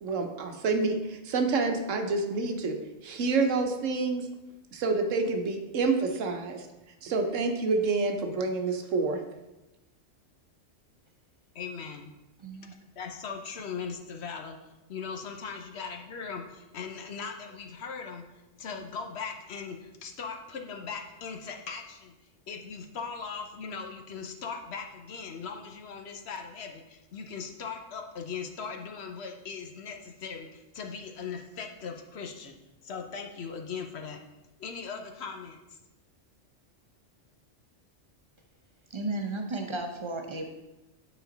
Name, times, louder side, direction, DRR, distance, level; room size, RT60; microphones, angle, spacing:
voice 1, 0.0-2.8 3.0-4.2 4.7-6.7 7.0-9.2, right 3 dB, 85° right, 5 dB, 1.2 m, -28 dB
voice 2, 11.5-12.1 13.0-14.6 14.9-22.1 22.5-32.5 32.8-34.2 34.6-35.6, left 5 dB, 60° left, 4 dB, 1.0 m, -39 dB
voice 3, 12.4-12.7 38.9-40.7, right 2 dB, 30° right, 4 dB, 0.6 m, -34 dB
9.1 x 4.3 x 3.9 m, 1.0 s
omnidirectional pair, 1.3 m